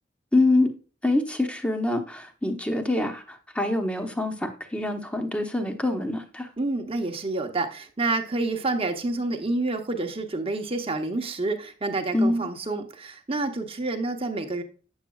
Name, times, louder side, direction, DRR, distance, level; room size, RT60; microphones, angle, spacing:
voice 1, 0.3-0.7 1.0-6.5 12.1-12.5, left 2 dB, 5° left, 5 dB, 0.9 m, -25 dB
voice 2, 6.6-14.6, right 2 dB, 30° right, 5 dB, 1.0 m, -28 dB
8.1 x 7.2 x 2.3 m, 0.36 s
head